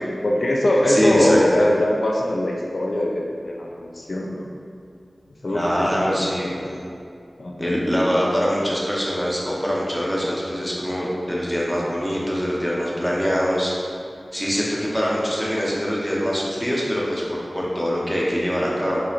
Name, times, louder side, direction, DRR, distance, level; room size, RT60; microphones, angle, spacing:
voice 1, 0.2-4.5 5.4-6.6 7.4-7.7, left 1 dB, 65° left, -1 dB, 0.3 m, -22 dB
voice 2, 0.9-1.4 5.5-6.8 7.6-13.7 14.3-19.0, equal, 5° left, -5 dB, 0.6 m, -23 dB
4.1 x 2.7 x 2.4 m, 2.4 s
wide cardioid pair, 80°, 0 cm